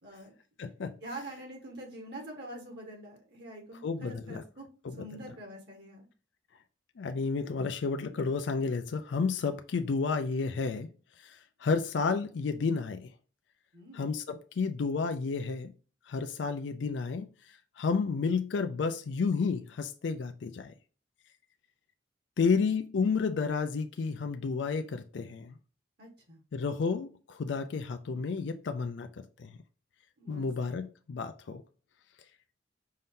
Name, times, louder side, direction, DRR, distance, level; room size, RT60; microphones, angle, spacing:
voice 1, 0.0-0.3 1.0-4.7 5.0-6.0 13.7-14.1 22.4-22.6 26.0-26.4 30.2-30.5 30.8-30.9, right 1 dB, 60° right, 1.5 m, -45 dB
voice 2, 0.6-1.0 3.8-4.4 7.0-10.9 11.2-13.1 13.9-15.7 16.1-17.3 17.8-20.7 22.4-25.5 26.5-29.5 30.3-31.6, left 4 dB, 70° left, 0.4 m, -31 dB
5.5 x 2.7 x 3.6 m
head